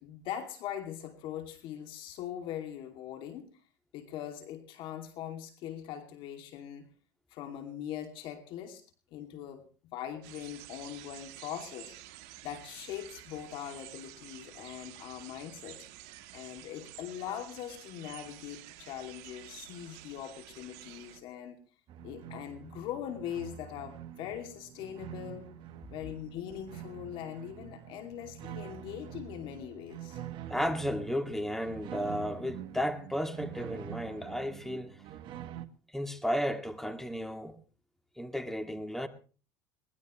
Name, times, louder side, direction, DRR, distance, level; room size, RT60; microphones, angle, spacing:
voice 1, 0.0-3.5 3.9-6.9 7.3-8.8 9.1-11.9 12.4-15.8 16.3-21.6 22.0-25.5 25.9-30.2, left 10 dB, 65° left, 2.6 m, -41 dB
sound 1, 10.2-21.2, right 16 dB, 75° right, 1.7 m, -50 dB
sound 2, 21.9-35.7, right 10 dB, 60° right, 1.4 m, -46 dB
voice 2, 30.5-35.0 35.9-37.6 38.2-39.1, equal, 5° left, 2.2 m, -33 dB
22.0 x 19.5 x 3.2 m
supercardioid pair, 100°, 9 cm